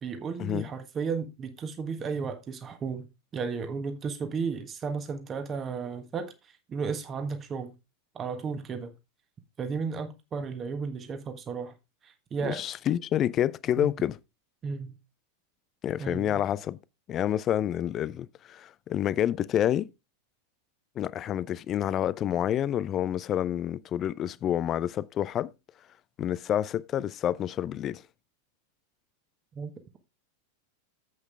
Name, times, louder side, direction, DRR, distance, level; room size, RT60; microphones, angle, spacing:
voice 1, 0.0-3.1 3.3-7.7 8.1-8.9 9.6-11.7 12.0-12.6 13.8-13.9 14.6-15.0 16.0-16.4 29.5-30.0, right 5 dB, 25° right, 1.4 m, -34 dB
voice 2, 12.4-14.2 15.8-16.8 17.1-19.9 21.0-25.5 26.2-28.0, left 11 dB, 30° left, 0.5 m, -28 dB
9.4 x 8.1 x 3.5 m
figure-of-eight pair, 90°, 0 cm